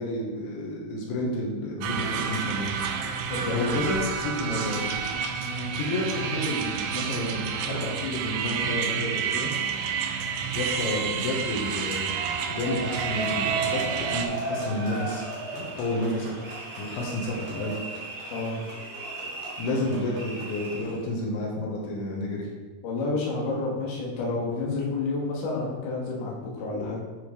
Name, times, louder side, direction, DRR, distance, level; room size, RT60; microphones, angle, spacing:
voice 1, 0.0-2.7 3.5-5.0 5.8-9.5 10.5-12.1 12.5-15.2 15.5-16.3 16.8-17.7 19.2-19.3 19.6-22.5, left 1 dB, 85° left, -2 dB, 3.5 m, -30 dB
sound 1, 1.8-14.3, right 6 dB, 85° right, 2.4 m, -30 dB
voice 2, 3.3-3.7 5.4-5.7 18.3-18.6 22.8-27.0, left 3 dB, 60° left, -4 dB, 2.4 m, -30 dB
sound 2, 12.1-21.0, right 3 dB, 55° right, 2.5 m, -35 dB
9.9 x 4.4 x 3.2 m, 1.3 s
omnidirectional pair, 5.3 m